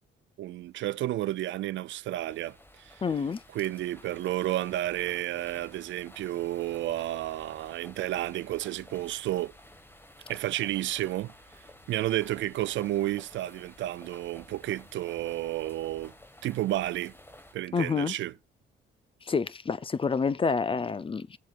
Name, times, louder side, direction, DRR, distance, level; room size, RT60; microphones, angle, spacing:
voice 1, 0.4-3.0 3.5-9.5 10.3-11.3 11.9-16.1 16.4-17.1 17.5-18.3, right 14 dB, 70° right, 0.4 m, -31 dB
sound 1, 2.2-17.5, left 1 dB, 10° left, 1.5 m, -53 dB
voice 2, 3.0-3.4 17.7-18.1 19.2-21.4, left 5 dB, 25° left, 0.6 m, -28 dB
17.0 x 7.5 x 2.5 m
cardioid pair, 90°, 20 cm